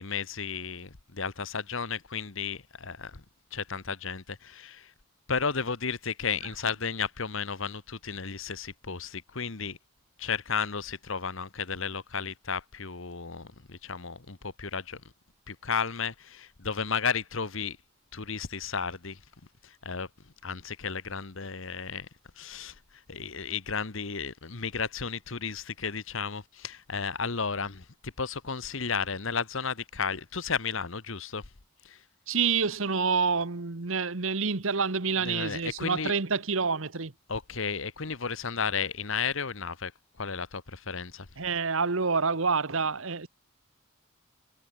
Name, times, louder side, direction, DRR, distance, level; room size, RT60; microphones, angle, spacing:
voice 1, 0.0-3.2 3.5-4.9 5.3-9.8 10.2-15.0 15.5-17.8 18.1-19.2 19.6-20.1 20.4-22.1 22.4-22.8 23.1-31.4 31.8-32.0 35.2-36.1 37.3-39.9 40.2-41.3, left 5 dB, 65° left, 1.3 m, -33 dB
voice 2, 32.3-37.1 41.4-43.3, right 5 dB, 70° right, 1.3 m, -27 dB
head